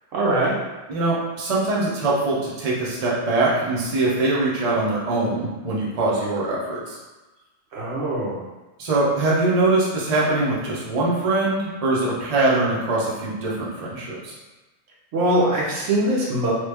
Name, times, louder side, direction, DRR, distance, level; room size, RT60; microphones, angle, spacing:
voice 1, 0.1-0.6 7.7-8.4 15.1-16.5, right 1 dB, 70° right, -5 dB, 1.1 m, -22 dB
voice 2, 0.9-7.0 8.8-14.3, right 2 dB, 40° right, -6 dB, 0.6 m, -22 dB
3.1 x 2.3 x 3.3 m, 1.1 s
omnidirectional pair, 1.4 m